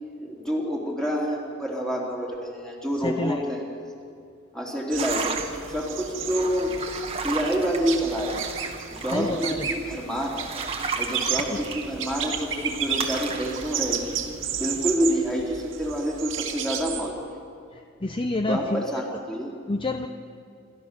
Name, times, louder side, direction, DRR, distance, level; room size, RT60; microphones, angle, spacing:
voice 1, 0.2-3.6 4.5-5.4 5.7-6.7 7.2-8.4 9.0-10.5 11.0-14.2 14.5-17.4 18.5-19.5, equal, 5° left, -2 dB, 3.5 m, -28 dB
voice 2, 3.0-3.4 9.1-9.7 11.5-11.6 17.7-19.0 19.7-20.1, left 2 dB, 25° left, 7 dB, 0.6 m, -28 dB
sound 1, 4.9-17.1, right 7 dB, 75° right, 1.9 m, -33 dB
sound 2, 5.0-15.0, right 4 dB, 30° right, 1.6 m, -36 dB
27.5 x 14.0 x 6.8 m, 2.5 s
head